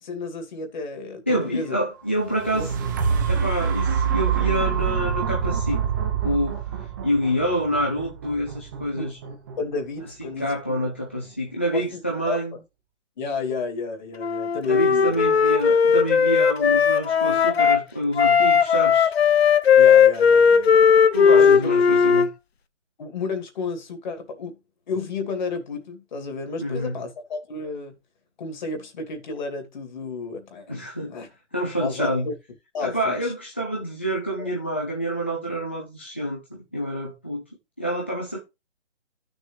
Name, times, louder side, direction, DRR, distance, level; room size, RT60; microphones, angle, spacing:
voice 1, 0.0-1.8 2.5-2.7 4.4-4.6 8.9-10.5 10.8-10.9 11.7-12.0 12.3-12.6 13.2-15.2 19.8-20.9 21.3-21.6 23.0-24.6 24.9-27.9 28.4-31.3 31.8-32.3 32.7-33.3 34.4-34.5, left 4 dB, 40° left, 2.7 m, -32 dB
voice 2, 1.3-2.7 3.3-5.8 6.2-6.6 7.0-9.1 10.4-12.6 14.7-19.1 21.1-22.3 26.6-27.0 30.7-31.1 31.5-32.3 32.8-37.4 37.8-38.4, equal, 10° left, 0.4 m, -27 dB
sound 1, 2.2-10.2 10.8-10.9, right 7 dB, 15° right, 0.8 m, -26 dB
Wind instrument woodwind instrument, 14.2-17.8 18.2-22.3, left 7 dB, 60° left, 0.9 m, -17 dB
12.5 x 6.4 x 3.2 m
hypercardioid pair, 155°, 35 cm